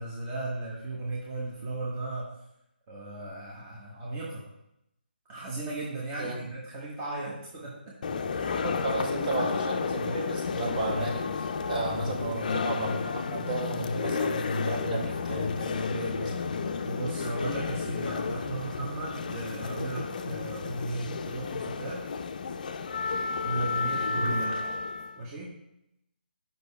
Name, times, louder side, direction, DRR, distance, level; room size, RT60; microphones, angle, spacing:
voice 1, 0.0-2.3 2.9-4.4 5.3-7.9 8.3-8.6 16.8-22.0 23.4-24.6 25.1-25.5, right 2 dB, 20° right, -5 dB, 1.0 m, -36 dB
sound 1, 8.0-25.2, left 5 dB, 45° left, 0.4 m, -32 dB
voice 2, 8.6-16.6 24.1-24.3, right 2 dB, 60° right, -2 dB, 2.0 m, -33 dB
8.0 x 5.4 x 2.3 m, 0.83 s
figure-of-eight pair, 155°, 6 cm